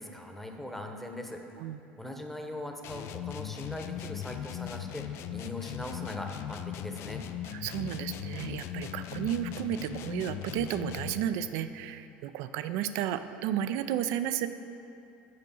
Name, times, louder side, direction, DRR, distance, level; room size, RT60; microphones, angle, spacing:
voice 1, 0.0-1.4 2.0-7.2, left 1 dB, 5° left, 3 dB, 1.0 m, -40 dB
sound 1, 2.8-11.3, left 10 dB, 55° left, 0.4 m, -39 dB
voice 2, 7.5-14.5, right 10 dB, 65° right, 11 dB, 0.4 m, -33 dB
6.6 x 5.3 x 7.0 m, 2.7 s
hypercardioid pair, 75°, 5 cm